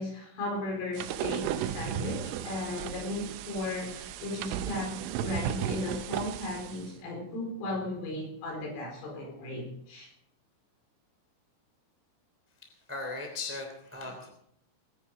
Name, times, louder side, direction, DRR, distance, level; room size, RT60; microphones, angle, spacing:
voice 1, 0.0-10.1, left 2 dB, 75° left, 0 dB, 7.0 m, -36 dB
sound 1, 1.0-6.9, right 10 dB, 80° right, 3.2 m, -35 dB
voice 2, 12.9-14.3, left 3 dB, 5° right, 2 dB, 1.5 m, -37 dB
21.5 x 10.5 x 4.8 m, 0.70 s
omnidirectional pair, 5.8 m